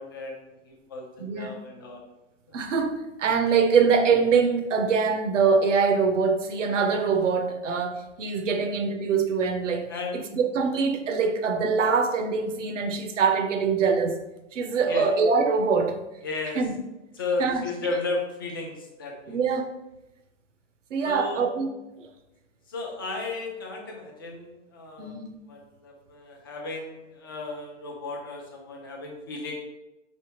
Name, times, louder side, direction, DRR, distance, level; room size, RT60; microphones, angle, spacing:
voice 1, 0.0-2.0 9.9-10.2 14.9-15.1 16.2-16.6 17.2-19.4 21.0-21.4 22.7-25.2 25.5-29.5, left 3 dB, 20° left, 0 dB, 0.4 m, -34 dB
voice 2, 1.2-1.6 2.5-14.2 14.5-16.0 16.6-16.8 17.4-17.6 19.3-19.7 20.9-21.7 25.0-25.3, right 5 dB, 80° right, 7 dB, 0.8 m, -24 dB
5.0 x 3.5 x 2.8 m, 0.96 s
hypercardioid pair, 160°, 37 cm